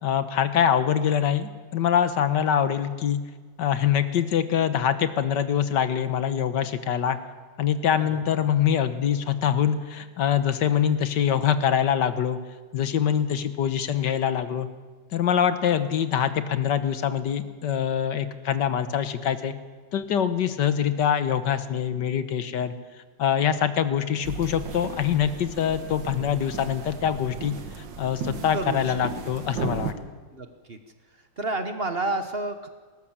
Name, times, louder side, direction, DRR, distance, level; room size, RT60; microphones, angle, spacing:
voice 1, 0.0-3.2 3.6-7.2 7.6-12.4 12.7-14.7 15.1-19.5 19.9-22.7 23.2-29.9, left 9 dB, 75° left, 11 dB, 1.7 m, -24 dB
sound 1, 24.2-29.9, right 5 dB, 90° right, 2.0 m, -35 dB
voice 2, 28.5-28.9 30.3-30.8 31.4-32.7, right 2 dB, 35° right, 7 dB, 1.2 m, -30 dB
19.5 x 18.5 x 7.4 m, 1.5 s
omnidirectional pair, 1.9 m